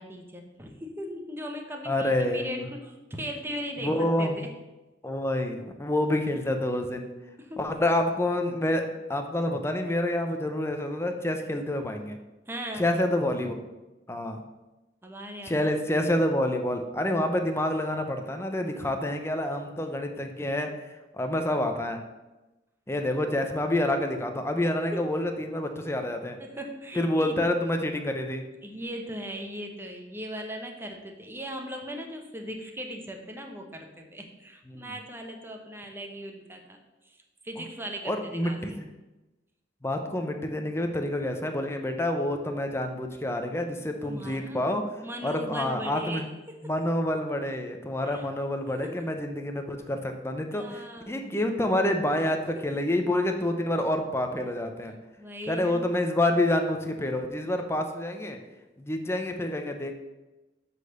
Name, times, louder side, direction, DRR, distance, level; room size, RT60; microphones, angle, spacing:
voice 1, 0.0-4.5 7.4-7.6 12.5-12.9 15.0-15.7 24.8-25.0 26.4-27.3 28.6-36.8 37.0-38.8 44.1-44.6 45.0-46.7 48.0-48.2 48.8-49.0 50.5-51.2 52.5-52.6 55.2-55.9, equal, 15° right, 3 dB, 1.0 m, -38 dB
voice 2, 1.9-2.7 3.8-4.5 5.0-7.1 7.6-8.8 9.1-12.2 12.8-13.6 14.1-14.4 15.4-20.7 21.1-22.0 22.9-26.4 27.0-28.5 34.7-34.9 38.1-38.9 39.8-44.8 45.2-46.3 46.6-54.9 55.5-58.4 58.8-59.9, left 1 dB, 15° left, 5 dB, 0.7 m, -28 dB
8.0 x 4.2 x 6.6 m, 1.1 s
head